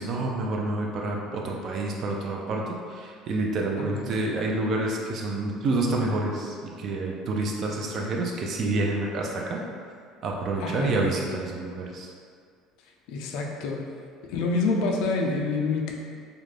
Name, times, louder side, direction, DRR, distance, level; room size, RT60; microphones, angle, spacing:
voice 1, 0.0-9.6 10.2-12.1, right 2 dB, 45° right, -1 dB, 0.4 m, -28 dB
voice 2, 10.6-10.9 13.1-13.8 14.3-15.9, left 3 dB, 75° left, 1 dB, 0.3 m, -27 dB
2.4 x 2.1 x 3.2 m, 2.1 s
cardioid pair, 130°, 0 cm